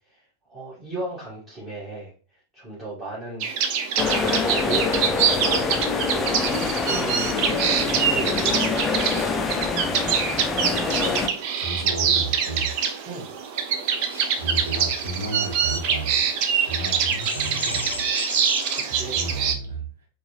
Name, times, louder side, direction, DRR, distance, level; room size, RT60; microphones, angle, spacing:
voice 1, 0.5-2.1 2.5-3.5 3.9-5.2 5.4-9.3 13.1-13.3 18.7-19.2, right 2 dB, 15° right, -10 dB, 1.7 m, -36 dB
sound 1, 3.4-19.5, right 7 dB, 45° right, 0.5 m, -25 dB
sound 2, 4.0-11.3, left 4 dB, 20° left, 0.5 m, -25 dB
voice 2, 11.6-12.7 14.1-18.1 18.9-19.8, right 2 dB, 60° right, 1 dB, 1.3 m, -32 dB
sound 3, 13.5-19.4, left 3 dB, 75° left, 0.5 m, -37 dB
4.6 x 2.4 x 3.1 m, 0.37 s
figure-of-eight pair, 90°, 0 cm